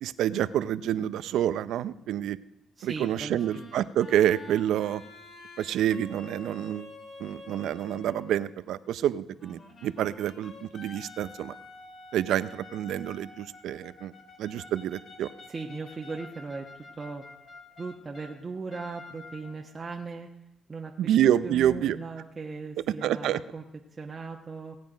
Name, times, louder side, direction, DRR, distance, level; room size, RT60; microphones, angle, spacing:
voice 1, 0.0-2.4 2.8-5.0 5.6-6.9 7.2-11.5 12.1-14.1 14.4-15.3 21.0-22.0 23.0-23.4, right 11 dB, 80° right, 16 dB, 0.5 m, -27 dB
voice 2, 2.8-3.7 15.5-17.3 17.8-20.3 20.7-21.1 21.4-24.8, right 4 dB, 30° right, 0 dB, 1.2 m, -38 dB
sound 1, 3.3-8.5 9.4-18.4 18.7-19.7, left 3 dB, 50° left, 2.5 m, -48 dB
17.5 x 9.3 x 5.1 m, 0.88 s
cardioid pair, 90°, 0 cm